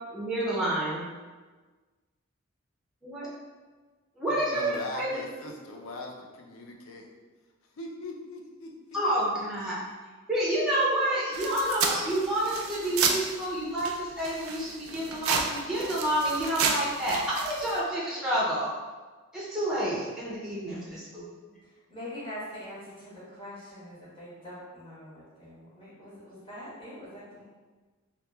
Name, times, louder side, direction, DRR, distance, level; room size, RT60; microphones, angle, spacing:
voice 1, 0.1-1.0 3.0-3.3 4.2-5.1 8.9-9.8 10.3-18.7 19.3-21.3, right 1 dB, 5° right, -7 dB, 0.5 m, -29 dB
voice 2, 4.3-7.1 7.7-8.7, left 2 dB, 75° left, 1 dB, 0.4 m, -40 dB
sound 1, 11.3-13.5 13.8-17.8, right 5 dB, 85° right, 0.3 m, -31 dB
voice 3, 21.9-27.4, left 1 dB, 25° left, -10 dB, 1.1 m, -43 dB
3.0 x 2.2 x 2.2 m, 1.3 s
head